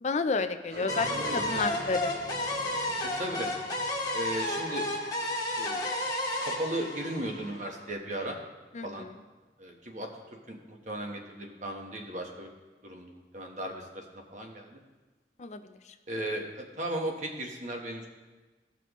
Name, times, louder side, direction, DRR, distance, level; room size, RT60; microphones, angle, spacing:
voice 1, 0.0-2.2 8.7-9.1 15.4-15.9, left 4 dB, 40° left, 9 dB, 0.4 m, -31 dB
sound 1, 0.7-8.0, right 1 dB, 60° right, 1.1 m, -46 dB
sound 2, 0.9-7.8, left 1 dB, 20° left, 1.3 m, -32 dB
voice 2, 1.0-1.7 3.0-3.5 4.1-4.9 5.6-5.9 6.4-8.4 8.8-9.1 9.6-10.1 10.5-12.5 12.8-14.0 14.3-14.8 16.1-18.0, right 1 dB, 40° right, 2 dB, 1.2 m, -36 dB
16.5 x 5.9 x 3.0 m, 1.3 s
head